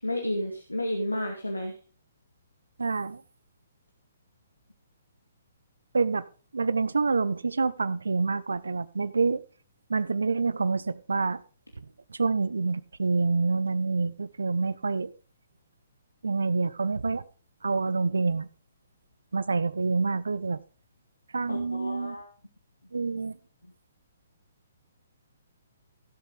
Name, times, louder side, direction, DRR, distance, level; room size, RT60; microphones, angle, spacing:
voice 1, 0.0-1.7 21.5-22.3, left 1 dB, 85° left, 2.3 m, -31 dB
voice 2, 2.8-3.2 5.9-6.2 6.5-9.4 9.9-11.4 12.1-15.1 16.2-17.2 17.6-18.5 19.3-20.6 21.3-22.2 22.9-23.4, right 4 dB, 70° right, 0.8 m, -27 dB
16.5 x 7.8 x 3.8 m
figure-of-eight pair, 125°, 0 cm